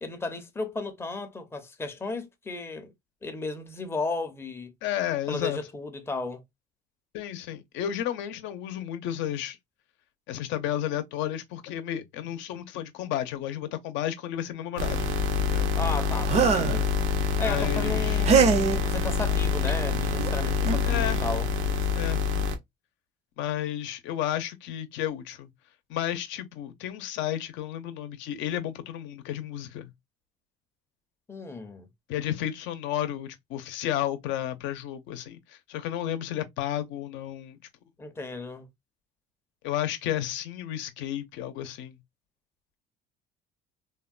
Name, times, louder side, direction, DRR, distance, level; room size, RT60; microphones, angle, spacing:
voice 1, 0.0-2.9 3.2-4.7 5.3-6.4 15.8-16.9 17.4-18.3 18.8-21.5 31.3-31.9 38.0-38.7, left 3 dB, 15° left, 0.5 m, -34 dB
voice 2, 4.8-5.6 7.1-9.6 10.3-15.1 15.5-15.7 17.4-18.2 20.8-21.3 21.9-22.2 23.4-25.5 25.9-29.9 32.1-37.6 39.6-42.0, left 11 dB, 75° left, 0.6 m, -32 dB
sound 1, 14.8-22.6, left 4 dB, 90° right, 0.7 m, -26 dB
sound 2, 16.3-16.8 18.2-18.8 20.2-20.3 20.6-20.9, right 6 dB, 35° right, 0.5 m, -22 dB
3.4 x 2.2 x 2.3 m
cardioid pair, 150°, 19 cm